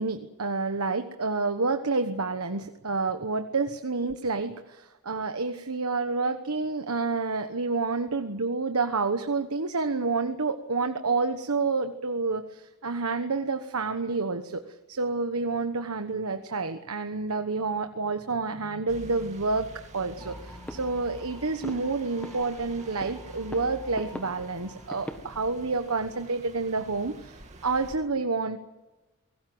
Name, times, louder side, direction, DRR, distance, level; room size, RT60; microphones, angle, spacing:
voice 1, 0.0-14.6 14.9-19.7 19.9-28.6, right 3 dB, 90° right, 7 dB, 1.2 m, -29 dB
sound 1, 18.9-28.0, right 1 dB, 30° right, 2.5 m, -47 dB
sound 2, 20.2-25.2, left 1 dB, 5° left, 1.5 m, -43 dB
27.5 x 19.0 x 7.9 m, 1.1 s
head